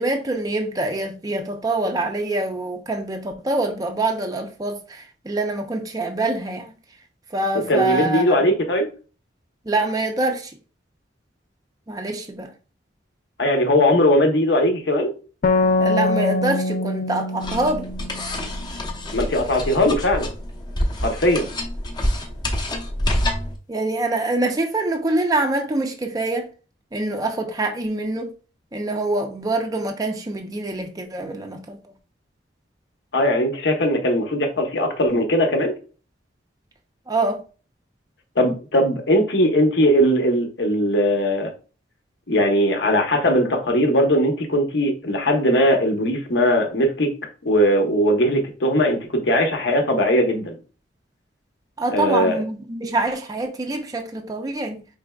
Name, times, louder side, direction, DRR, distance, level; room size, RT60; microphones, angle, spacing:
voice 1, 0.0-6.7 7.3-8.4 9.7-10.5 11.9-12.5 15.8-17.9 23.7-26.5 26.9-28.3 28.7-31.8 37.1-37.4 51.8-54.9, right 2 dB, 20° right, 0.4 m, -25 dB
voice 2, 7.7-8.9 13.4-15.1 19.1-20.3 21.0-21.5 33.1-35.7 38.4-41.5 42.3-47.1 47.4-50.6 51.9-52.4, equal, 70° left, 0.9 m, -19 dB
sound 1, 15.4-18.9, left 2 dB, 50° left, 0.4 m, -23 dB
sound 2, 17.4-23.6, left 1 dB, 25° left, 0.8 m, -27 dB
5.1 x 3.3 x 2.3 m
head